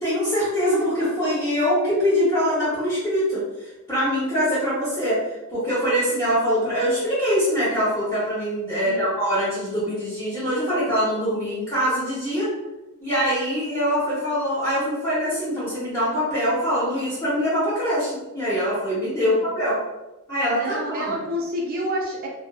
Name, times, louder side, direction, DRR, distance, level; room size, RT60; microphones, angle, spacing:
voice 1, 0.0-3.4 3.9-5.2 5.5-12.5 13.0-19.8 20.3-21.2, equal, 10° left, -14 dB, 0.9 m, -23 dB
voice 2, 20.5-22.3, equal, 40° right, -3 dB, 0.4 m, -29 dB
2.5 x 2.3 x 2.3 m, 1.1 s
head